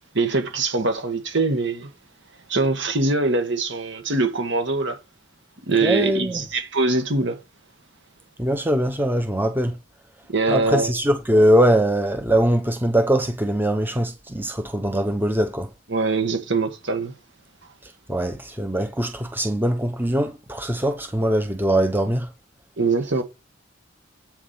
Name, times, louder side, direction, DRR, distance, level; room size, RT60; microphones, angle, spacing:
voice 1, 0.1-1.9 2.5-5.0 5.7-7.4 10.3-10.9 15.9-17.1 22.8-23.2, right 3 dB, 65° right, 2.1 m, -23 dB
voice 2, 5.8-6.5 8.4-9.8 10.5-15.7 18.1-22.3, right 1 dB, 10° right, 0.9 m, -21 dB
8.6 x 4.9 x 5.7 m
head